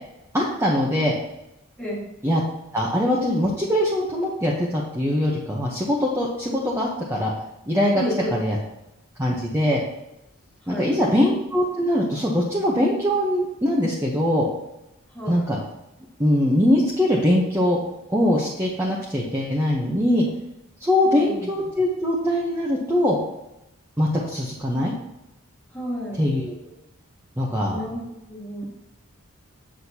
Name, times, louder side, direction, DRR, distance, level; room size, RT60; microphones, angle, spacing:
voice 1, 0.3-1.1 2.2-2.4 2.7-7.3 7.7-8.0 8.3-8.6 9.2-9.8 10.7-14.5 15.3-15.6 16.2-17.8 18.1-20.3 20.8-23.2 24.0-24.9 26.2-26.6 27.4-27.8, left 1 dB, 10° right, -5 dB, 0.8 m, -22 dB
voice 2, 7.9-8.3 10.6-11.1 15.1-15.5 21.0-21.6 25.7-26.3 27.7-28.7, equal, 5° left, -5 dB, 1.9 m, -32 dB
7.9 x 6.3 x 2.8 m, 0.89 s
head